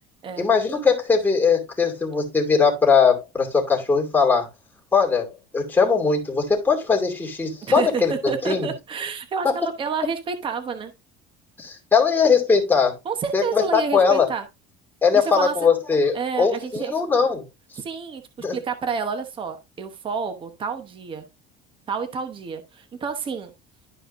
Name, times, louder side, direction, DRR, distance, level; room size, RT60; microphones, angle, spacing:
voice 1, 0.4-4.5 4.9-8.7 9.4-9.6 11.6-13.0 13.3-14.3 15.0-17.4 18.4-18.6, left 5 dB, 10° left, 2.5 m, -20 dB
voice 2, 7.6-10.9 13.0-14.4 15.1-15.5 16.1-16.9 17.8-18.2 18.5-21.2 21.9-23.5, right 5 dB, 25° right, 1.0 m, -29 dB
12.0 x 4.9 x 2.6 m
cardioid pair, 160°, 20 cm